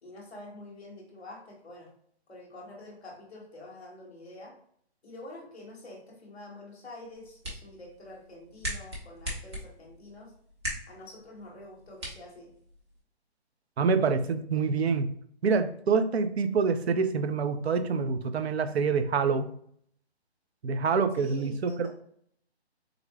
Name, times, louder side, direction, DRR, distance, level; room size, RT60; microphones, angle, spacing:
voice 1, 0.0-1.9 2.3-4.5 5.0-10.3 10.9-12.5 21.2-21.9, left 2 dB, 5° left, -12 dB, 0.6 m, -47 dB
sound 1, 7.0-13.0, equal, 25° right, 0.8 m, -41 dB
voice 2, 13.8-15.1 15.4-19.5 20.6-21.9, right 5 dB, 70° right, 10 dB, 0.5 m, -26 dB
3.9 x 2.2 x 3.0 m, 0.64 s
hypercardioid pair, 160°, 33 cm